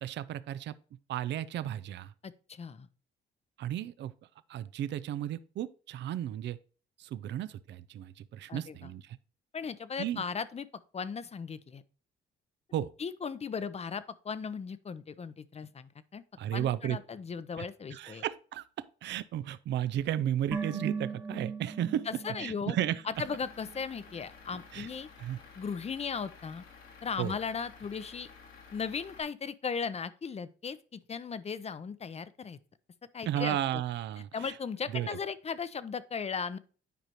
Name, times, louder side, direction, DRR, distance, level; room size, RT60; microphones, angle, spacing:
voice 1, 0.0-0.7 1.1-2.1 3.6-4.1 4.5-6.6 7.0-9.2 10.0-10.2 12.7-12.9 16.4-17.0 17.6-17.7 17.9-18.6 19.0-22.1 22.4-23.0 24.7-24.9 25.2-25.4 27.2-27.4 33.2-34.6 34.9-35.2, right 11 dB, 65° right, 0.4 m, -34 dB
voice 2, 2.2-2.9 8.5-8.8 9.5-10.7 10.9-11.8 13.0-16.2 16.5-18.2 22.1-22.8 23.1-25.1 25.6-26.6 27.0-28.3 28.7-32.6 33.1-33.8 34.3-36.6, left 6 dB, 30° left, 0.6 m, -37 dB
sound 1, 20.5-23.8 24.1-24.2, right 5 dB, 10° right, 1.0 m, -39 dB
Truck / Idling, 23.1-29.2, left 5 dB, 85° left, 2.1 m, -53 dB
9.2 x 5.0 x 2.9 m
cardioid pair, 90°, 20 cm